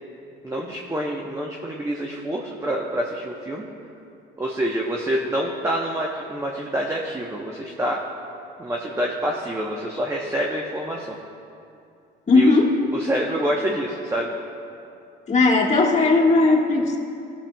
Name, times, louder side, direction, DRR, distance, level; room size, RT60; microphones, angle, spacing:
voice 1, 0.4-3.7 4.4-8.0 8.6-11.2 12.3-12.5 12.9-14.3, right 1 dB, 15° right, -1 dB, 0.9 m, -27 dB
voice 2, 12.3-12.7 15.3-17.0, left 3 dB, 35° left, -2 dB, 1.6 m, -17 dB
18.0 x 7.2 x 2.3 m, 2.6 s
supercardioid pair, 75°, 21 cm